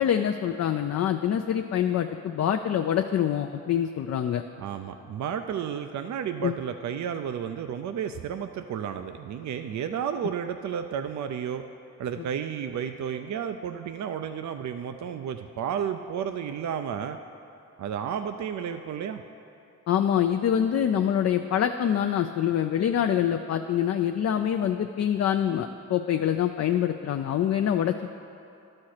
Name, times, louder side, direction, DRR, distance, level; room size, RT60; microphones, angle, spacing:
voice 1, 0.0-4.4 6.4-6.5 19.9-28.1, left 9 dB, 55° left, 6 dB, 0.4 m, -25 dB
voice 2, 4.6-11.6 12.0-17.2 17.8-19.2, right 8 dB, 65° right, 8 dB, 0.5 m, -32 dB
11.5 x 4.3 x 6.5 m, 2.7 s
cardioid pair, 55°, 31 cm